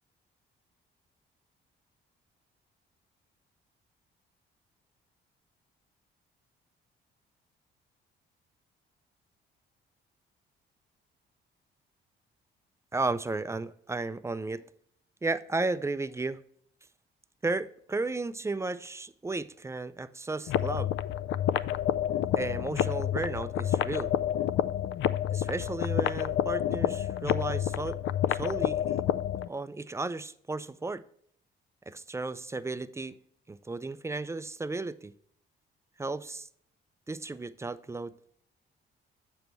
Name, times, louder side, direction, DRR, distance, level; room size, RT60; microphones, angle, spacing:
voice 1, 12.9-14.6 15.2-16.4 17.4-20.9 22.4-24.1 25.3-28.0 28.3-29.0 29.5-31.0 31.9-33.1 33.5-35.1 36.0-36.5 37.1-38.1, right 3 dB, 15° right, 14 dB, 0.4 m, -34 dB
sound 1, 20.5-29.5, left 11 dB, 75° left, 0.4 m, -29 dB
7.8 x 6.9 x 3.1 m, 0.64 s
cardioid pair, 90°, 20 cm